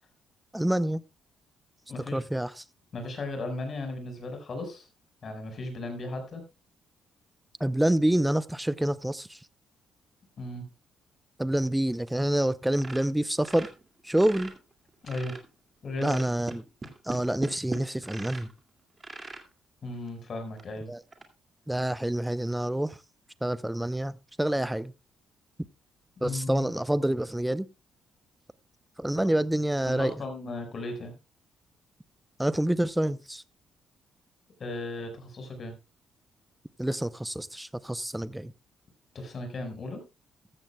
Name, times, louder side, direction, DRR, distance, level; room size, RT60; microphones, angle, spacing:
voice 1, 0.5-1.0 2.1-2.6 7.6-9.4 11.4-13.7 14.0-14.5 16.0-16.6 17.0-18.5 20.9-21.0 21.7-23.0 23.4-24.9 26.2-27.7 29.0-30.1 32.4-33.4 36.8-38.5, right 1 dB, 5° right, 0.6 m, -27 dB
voice 2, 1.9-2.2 2.9-4.9 5.2-6.4 10.4-10.7 15.0-15.3 15.8-16.2 19.8-20.9 26.2-26.6 29.9-31.2 34.6-35.7 39.1-40.0, left 2 dB, 45° left, 5.0 m, -36 dB
sound 1, 12.8-14.6 14.9-15.5 16.0-18.5 19.0-19.5 20.1-20.2 20.6-20.7 21.1-21.3, right 3 dB, 30° right, 2.2 m, -40 dB
14.5 x 13.5 x 2.3 m
cardioid pair, 90°, 0 cm